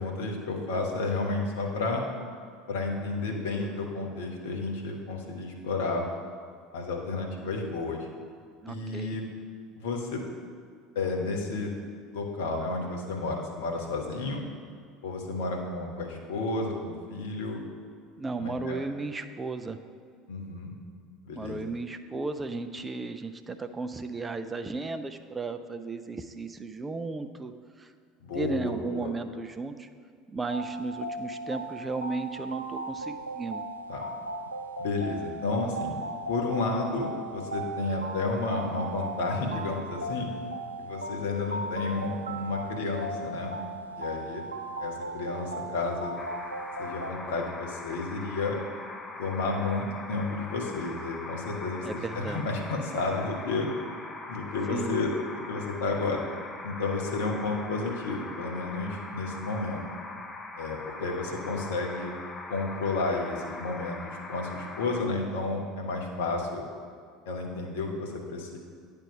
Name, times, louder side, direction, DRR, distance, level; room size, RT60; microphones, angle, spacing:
voice 1, 0.0-2.0 2.7-6.0 6.7-8.1 8.7-9.3 9.8-10.2 10.9-11.7 12.1-14.4 15.0-17.6 18.4-18.8 20.3-20.7 21.2-21.7 28.2-29.1 33.9-34.0 34.8-36.0 36.3-40.3 40.8-43.6 43.9-44.4 44.8-46.2 46.8-48.6 49.2-53.7 54.3-55.1 55.5-56.2 56.6-59.8 60.6-62.1 62.5-66.7 67.3-68.6, left 3 dB, 65° left, 1 dB, 0.9 m, -31 dB
voice 2, 8.6-9.2 18.2-19.8 21.3-27.5 27.8-27.9 28.3-29.9 30.3-33.6 51.8-52.4 54.7-55.0, right 3 dB, 20° right, 9 dB, 0.4 m, -35 dB
sound 1, 30.5-47.1, right 1 dB, 90° right, 0.4 m, -37 dB
sound 2, 46.2-65.0, left 2 dB, 20° left, 0.7 m, -41 dB
8.9 x 3.5 x 5.6 m, 2.1 s
figure-of-eight pair, 70°, 0 cm